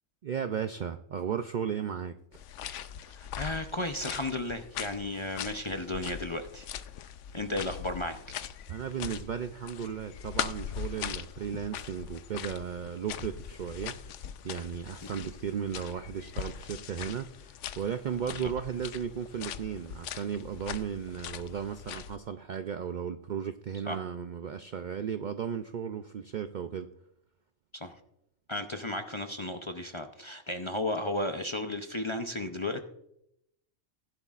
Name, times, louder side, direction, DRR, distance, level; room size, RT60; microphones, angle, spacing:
voice 1, 0.2-2.2 8.7-26.9, right 8 dB, 90° right, 8 dB, 0.4 m, -35 dB
sound 1, 2.3-22.2, left 9 dB, 70° left, 0.9 m, -41 dB
voice 2, 3.1-6.7 7.3-8.2 18.3-18.5 23.9-24.0 27.7-27.9 28.5-32.8, left 1 dB, 40° left, 6 dB, 0.4 m, -34 dB
16.0 x 11.0 x 2.4 m, 0.79 s
omnidirectional pair, 1.4 m